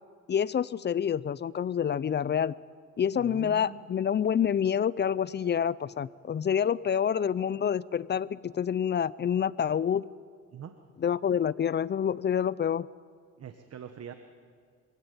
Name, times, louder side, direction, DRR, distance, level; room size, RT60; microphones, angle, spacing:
voice 1, 0.3-2.6 3.0-10.1 11.0-12.9, left 8 dB, 35° left, 21 dB, 0.5 m, -27 dB
voice 2, 3.2-3.8 10.5-10.8 13.4-14.1, right 8 dB, 55° right, 8 dB, 1.3 m, -43 dB
25.0 x 16.5 x 8.2 m, 2.1 s
cardioid pair, 90°, 30 cm